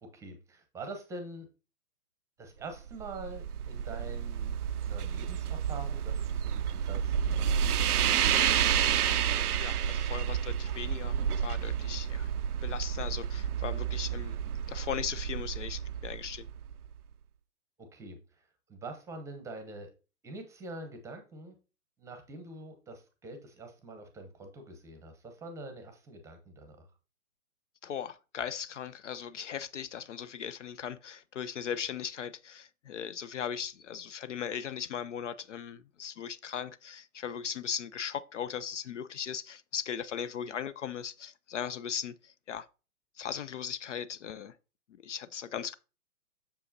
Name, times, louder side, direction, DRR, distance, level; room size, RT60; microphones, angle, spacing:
voice 1, 0.0-1.5 2.4-4.5 4.9-8.3 17.8-19.9 20.2-21.5 22.0-26.9, right 2 dB, 5° right, 0.8 m, -45 dB
sound 1, 2.8-16.9, right 9 dB, 90° right, 0.5 m, -30 dB
voice 2, 9.6-12.3 12.6-14.4 14.7-16.5 27.8-42.7 43.2-44.6 45.0-45.7, left 8 dB, 55° left, 0.5 m, -38 dB
7.5 x 6.9 x 2.7 m
hypercardioid pair, 130°, 44 cm